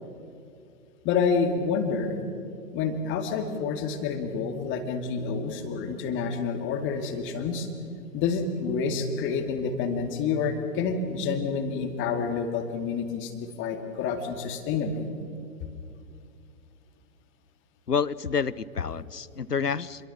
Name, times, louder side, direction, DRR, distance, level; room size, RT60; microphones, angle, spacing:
voice 1, 1.0-2.2 2.7-7.7 8.1-13.3 13.6-15.1, left 5 dB, 25° left, 6 dB, 2.3 m, -28 dB
voice 2, 17.9-20.1, left 6 dB, 90° left, 20 dB, 0.8 m, -28 dB
27.5 x 22.5 x 6.0 m, 2.5 s
figure-of-eight pair, 110°, 46 cm